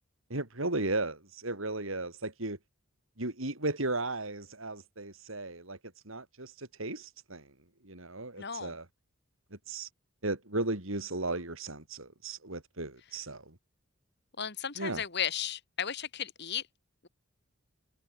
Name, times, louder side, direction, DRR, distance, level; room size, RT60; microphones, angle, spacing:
voice 1, 0.3-2.6 3.2-5.8 6.1-7.5 7.8-8.8 9.7-9.9 10.2-13.5 14.8-15.0, right 2 dB, 75° right, 4.4 m, -35 dB
voice 2, 8.4-8.7 14.4-16.6, left 8 dB, 55° left, 2.5 m, -35 dB
head